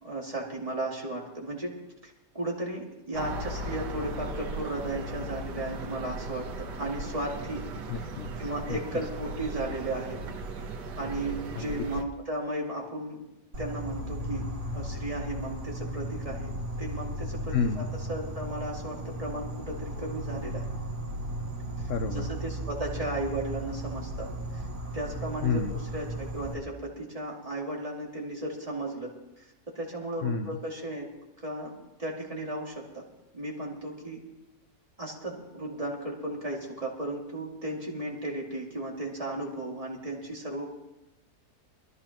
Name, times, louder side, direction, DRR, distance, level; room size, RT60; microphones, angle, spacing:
voice 1, 0.0-1.7 2.0-7.7 7.9-8.1 8.4-10.2 11.0-13.2 13.6-14.5 14.7-20.8 21.8-24.7 24.9-29.5 29.7-31.1 31.4-31.7 32.0-33.0 33.3-34.2 35.0-40.7, right 1 dB, 20° right, -3 dB, 2.4 m, -35 dB
sound 1, 3.1-12.0, right 2 dB, 75° right, 1.6 m, -37 dB
voice 2, 7.9-8.8 11.5-11.8 17.5-17.9 21.9-22.3 25.4-25.8 30.2-30.6, left 5 dB, 65° left, 8 dB, 0.8 m, -30 dB
Insect, 13.5-26.5, right 1 dB, 60° right, 2.0 m, -36 dB
22.5 x 14.0 x 2.9 m, 0.96 s
omnidirectional pair, 1.9 m